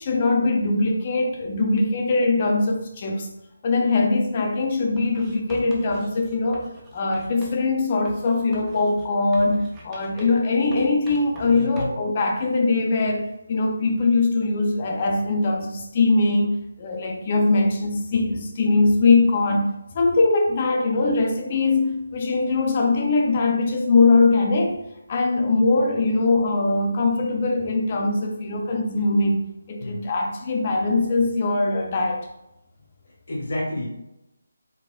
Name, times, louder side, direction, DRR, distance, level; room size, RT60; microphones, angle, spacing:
voice 1, 0.0-3.3 3.6-6.7 6.9-24.8 25.1-32.3, left 3 dB, 35° left, 2 dB, 0.5 m, -21 dB
Writing, 5.0-7.6 8.0-10.5 10.7-12.1, right 1 dB, 15° right, 0.5 m, -43 dB
voice 2, 11.4-11.9 29.8-30.0 33.3-33.9, left 1 dB, 55° left, -4 dB, 1.0 m, -30 dB
4.1 x 2.1 x 2.4 m, 0.87 s
figure-of-eight pair, 155°, 0 cm